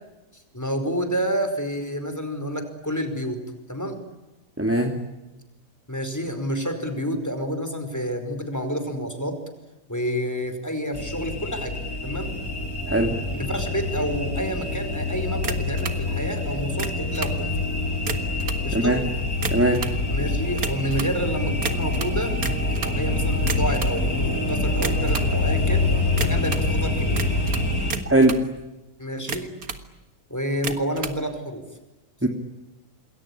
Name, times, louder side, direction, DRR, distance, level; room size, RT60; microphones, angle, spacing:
voice 1, 0.3-3.4 3.7-4.0 5.9-9.4 9.9-11.7 12.0-12.3 13.3-17.7 18.6-19.0 20.1-22.3 22.7-25.9 26.1-27.3 29.0-29.5 30.3-31.6, equal, 10° left, 7 dB, 4.9 m, -29 dB
voice 2, 4.6-5.0 12.9-13.1 18.7-19.0 19.5-19.9 28.1-28.4 32.2-32.3, right 1 dB, 10° right, 4 dB, 2.5 m, -20 dB
sound 1, 10.9-27.9, left 2 dB, 60° left, 5.7 m, -26 dB
sound 2, 15.4-16.0 16.7-17.4 18.0-18.7 19.3-20.0 20.6-21.2 21.6-23.0 23.4-24.0 24.7-25.3 26.2-26.7 27.2-28.5 29.1-29.9 30.5-31.2, right 4 dB, 60° right, 2.3 m, -32 dB
28.5 x 21.0 x 10.0 m, 1.0 s
omnidirectional pair, 1.7 m